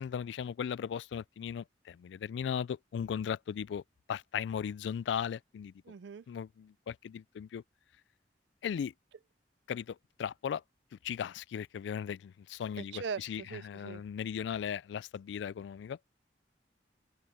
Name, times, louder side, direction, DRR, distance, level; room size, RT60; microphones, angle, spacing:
voice 1, 0.0-3.8 4.1-5.7 6.3-7.6 8.6-8.9 9.7-10.6 10.9-16.0, left 8 dB, 85° left, 0.3 m, -37 dB
voice 2, 5.9-6.2 12.8-14.0, right 6 dB, 75° right, 0.4 m, -41 dB
head